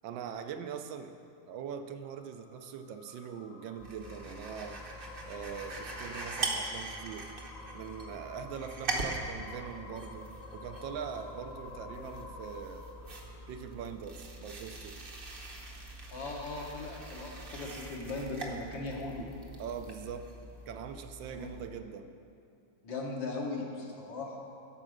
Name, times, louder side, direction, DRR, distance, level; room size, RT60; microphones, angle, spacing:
voice 1, 0.0-1.2 1.5-4.8 5.3-7.3 7.7-12.9 13.5-15.0 19.6-20.3 20.7-22.1, right 7 dB, 80° right, 7 dB, 1.3 m, -42 dB
sound 1, 2.0-14.5, left 3 dB, 50° left, 1.1 m, -50 dB
sound 2, 3.8-21.7, right 2 dB, 40° right, 0.8 m, -42 dB
voice 2, 16.1-19.3 21.3-21.5 22.8-24.5, left 3 dB, 75° left, -1 dB, 2.0 m, -38 dB
12.0 x 4.8 x 6.4 m, 2.4 s
omnidirectional pair, 2.1 m